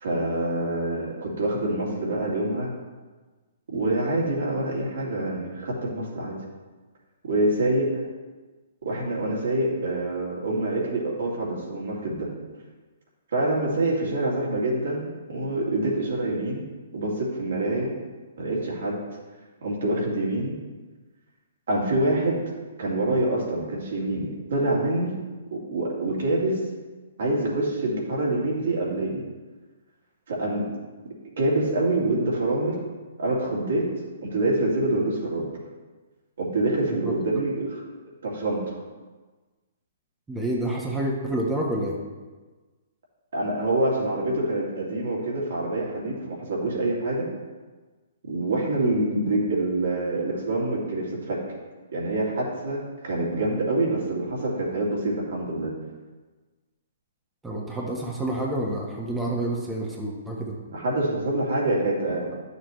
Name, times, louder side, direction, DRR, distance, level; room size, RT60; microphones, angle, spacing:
voice 1, 0.0-2.7 3.7-6.4 7.2-7.9 8.8-12.3 13.3-16.6 16.9-17.9 18.4-19.0 19.6-20.6 21.7-25.2 25.5-26.6 27.2-29.2 30.3-30.7 31.4-32.8 33.2-33.9 34.2-35.5 36.4-37.8 38.2-38.8 43.3-47.3 48.3-51.4 51.9-55.7 60.7-62.3, right 2 dB, 70° right, -4 dB, 2.4 m, -26 dB
voice 2, 40.3-42.0 57.4-60.6, right 1 dB, 10° right, -3 dB, 1.2 m, -28 dB
10.5 x 6.7 x 3.1 m, 1.3 s
hypercardioid pair, 130°, 0 cm